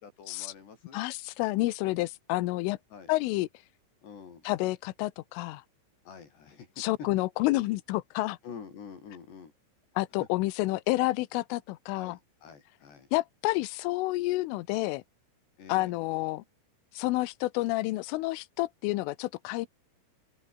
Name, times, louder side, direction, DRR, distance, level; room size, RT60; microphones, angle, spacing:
voice 1, 0.0-1.0 2.9-3.1 4.0-4.5 6.1-6.7 8.4-9.5 11.9-13.1 15.6-16.0, left 6 dB, 60° left, 6.0 m, -47 dB
voice 2, 0.9-2.8 3.1-3.5 4.4-5.6 6.8-8.4 10.0-12.2 13.1-15.0 15.7-16.4 17.0-19.7, left 19 dB, 85° left, 3.5 m, -29 dB
omnidirectional pair, 5.7 m